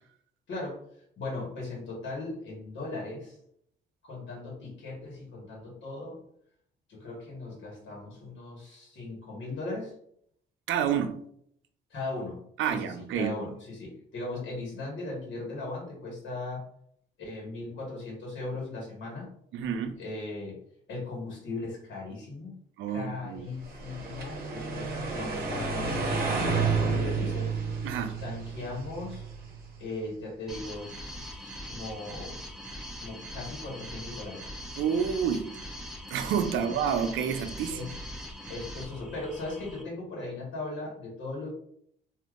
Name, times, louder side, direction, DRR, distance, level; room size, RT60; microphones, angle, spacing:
voice 1, 0.5-0.8 1.2-3.4 4.0-6.2 6.9-9.9 11.9-16.6 17.2-19.3 20.0-20.6 20.9-22.5 22.9-27.5 28.2-29.2 29.8-32.4 33.0-34.5 36.5-36.7 37.7-38.0 38.5-41.5, left 2 dB, 65° left, -3 dB, 1.4 m, -38 dB
voice 2, 10.7-11.2 12.6-13.3 19.5-20.0 22.8-23.5 27.8-28.2 34.8-35.5 36.1-38.0, right 7 dB, 80° right, 8 dB, 0.4 m, -29 dB
sound 1, 23.7-29.8, right 4 dB, 50° right, 0.8 m, -31 dB
sound 2, 30.5-39.8, equal, 5° right, 0.7 m, -42 dB
3.4 x 2.6 x 2.4 m, 0.67 s
cardioid pair, 90°, 20 cm